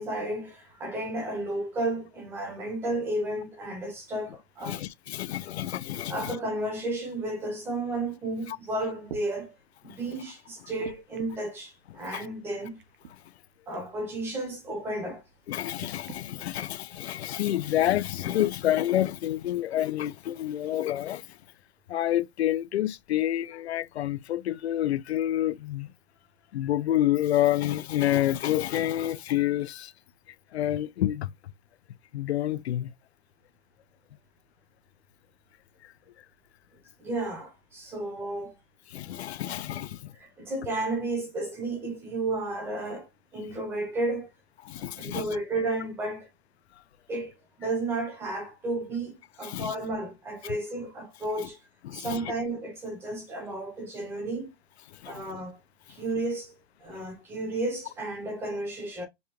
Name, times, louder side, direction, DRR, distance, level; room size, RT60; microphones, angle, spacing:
voice 1, 0.0-4.8 6.1-9.5 9.8-12.8 13.7-15.2 37.0-38.5 40.1-44.3 45.0-46.3 47.1-47.3 47.6-51.6 51.9-54.5 55.1-55.6 55.9-56.5 56.8-59.0, right 2 dB, 5° right, 0.7 m, -32 dB
voice 2, 4.7-6.4 12.1-12.2 15.5-21.2 21.9-25.9 26.5-29.9 30.5-31.3 32.1-32.9 38.9-40.1 44.7-45.3 49.4-49.7 50.4-50.5 51.8-52.2 55.0-55.4, left 13 dB, 75° left, 0.5 m, -28 dB
sound 1, 8.5-8.6 9.0-9.3 10.8-11.5 12.8-13.1 13.7-13.9 15.8-16.2 17.1-17.2, right 7 dB, 55° right, 0.8 m, -44 dB
5.4 x 2.2 x 2.9 m
hypercardioid pair, 165°, 32 cm